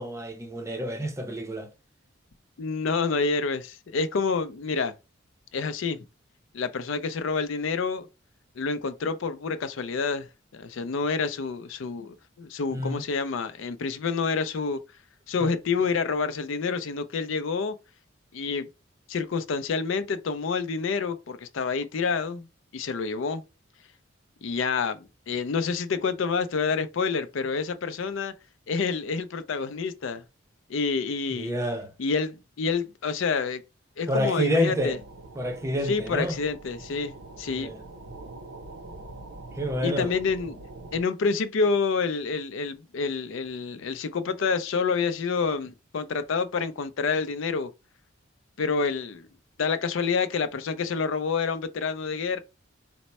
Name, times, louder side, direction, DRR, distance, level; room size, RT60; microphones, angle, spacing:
voice 1, 0.0-1.7 12.7-13.0 15.4-15.5 31.3-31.9 34.1-35.0 35.4-36.4 37.6-37.8 39.5-40.1, equal, 15° right, 0.5 m, -28 dB
voice 2, 2.6-4.9 5.5-6.0 6.5-8.1 8.6-14.8 15.3-17.7 18.3-18.7 19.1-22.5 22.7-23.4 24.4-28.3 28.7-30.2 30.7-31.5 32.0-33.6 34.0-35.0 35.8-37.7 39.8-40.6 40.9-47.7 48.6-49.3 49.6-52.4, left 5 dB, 65° left, 0.4 m, -28 dB
sound 1, 34.8-41.0, right 2 dB, 75° right, 0.6 m, -44 dB
4.3 x 2.0 x 4.1 m
head